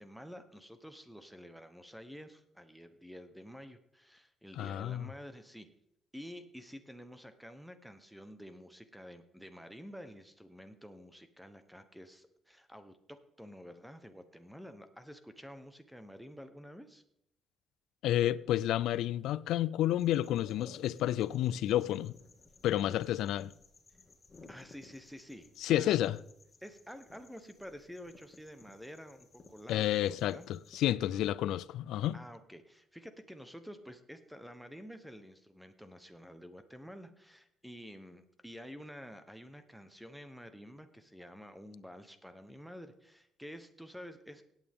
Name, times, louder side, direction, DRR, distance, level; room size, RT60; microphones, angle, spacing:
voice 1, 0.0-5.7 6.1-17.0 24.5-26.1 26.6-30.5 31.1-31.3 32.1-44.4, equal, ahead, 1.1 m, -50 dB
voice 2, 4.6-5.1 18.0-22.1 22.6-23.5 25.6-26.2 29.7-32.2, left 13 dB, 85° left, 0.3 m, -30 dB
sound 1, 20.0-30.8, left 3 dB, 30° left, 1.9 m, -58 dB
17.0 x 8.9 x 3.7 m
cardioid pair, 90°, 0 cm